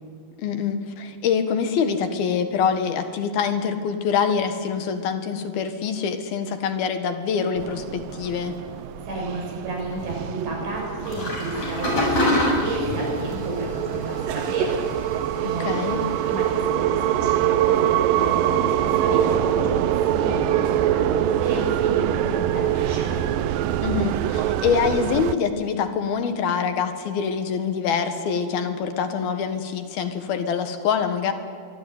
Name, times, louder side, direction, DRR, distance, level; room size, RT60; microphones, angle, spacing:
voice 1, 0.4-8.6 15.6-16.0 23.8-31.3, left 6 dB, 65° left, 8 dB, 3.4 m, -25 dB
sound 1, 7.6-25.4, right 11 dB, 75° right, 2.1 m, -24 dB
voice 2, 9.0-14.8 15.1-23.2, right 2 dB, 90° right, 0 dB, 9.7 m, -31 dB
sound 2, 11.0-16.6, left 1 dB, 50° left, 8.6 m, -27 dB
25.0 x 24.0 x 9.5 m, 2.2 s
omnidirectional pair, 4.8 m